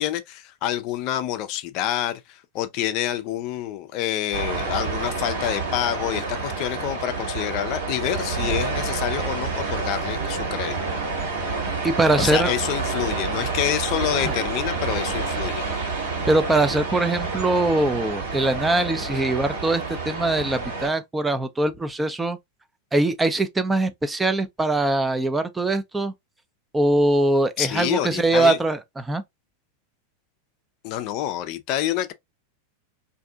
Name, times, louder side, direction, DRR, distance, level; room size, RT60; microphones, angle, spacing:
voice 1, 0.0-10.8 12.2-15.6 27.6-28.6 30.8-32.1, left 12 dB, 50° left, 0.4 m, -27 dB
sound 1, 4.3-20.9, right 4 dB, 80° right, 1.4 m, -28 dB
voice 2, 11.8-12.5 16.3-22.4 22.9-26.1 26.7-29.2, right 2 dB, 10° right, 0.4 m, -22 dB
2.6 x 2.5 x 2.2 m
hypercardioid pair, 100°, 0 cm